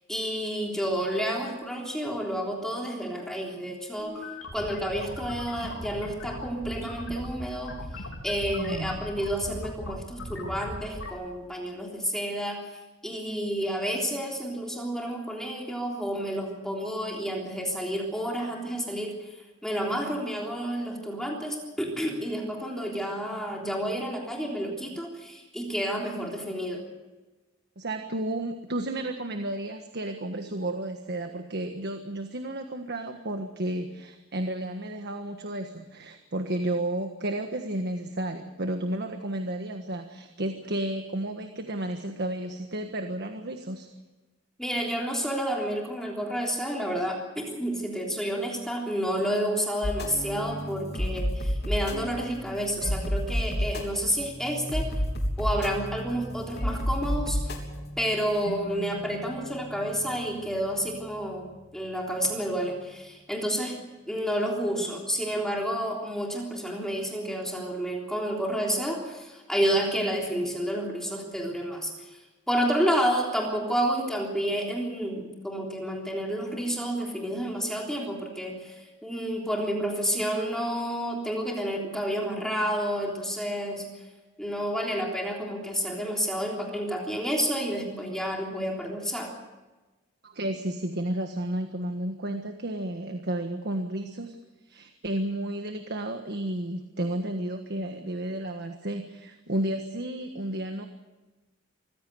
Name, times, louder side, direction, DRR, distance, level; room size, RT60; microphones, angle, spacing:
voice 1, 0.1-4.2 4.5-7.8 8.2-12.6 13.0-26.8 44.6-54.9 55.4-57.4 58.0-61.5 61.7-63.7 64.1-72.2 72.5-83.8 84.4-89.3, equal, 5° left, -1 dB, 3.5 m, -30 dB
sound 1, 4.0-11.1, left 1 dB, 90° left, 4.0 m, -39 dB
voice 2, 8.5-8.9 27.8-43.9 90.2-94.4 94.7-100.9, right 1 dB, 55° right, 6 dB, 1.5 m, -32 dB
sound 2, 49.8-62.4, equal, 55° left, 3.6 m, -32 dB
25.0 x 16.0 x 7.9 m, 1.2 s
head